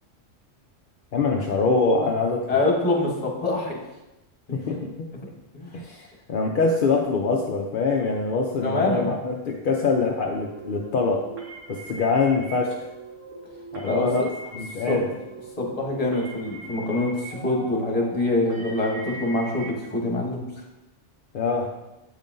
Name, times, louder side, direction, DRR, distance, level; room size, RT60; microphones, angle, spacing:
voice 1, 1.1-2.6 4.5-5.1 5.7-11.3 11.7-12.8 13.7-14.2 14.5-15.1 21.3-21.7, left 4 dB, 55° left, 0 dB, 0.6 m, -24 dB
voice 2, 2.5-3.8 4.5-4.8 5.5-5.8 8.6-9.1 13.8-14.3 14.9-15.0 15.6-20.4, left 2 dB, 30° left, -1 dB, 1.3 m, -25 dB
sound 1, 10.2-19.7, right 2 dB, 70° right, 1.4 m, -41 dB
8.1 x 5.4 x 2.6 m, 0.98 s
omnidirectional pair, 1.3 m